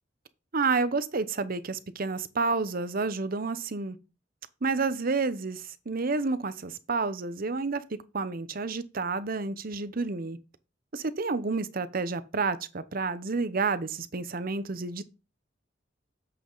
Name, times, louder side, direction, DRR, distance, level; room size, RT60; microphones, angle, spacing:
voice 1, 0.5-4.0 4.6-10.4 10.9-15.0, right 4 dB, 50° right, 0.8 m, -30 dB
9.3 x 7.7 x 3.9 m
head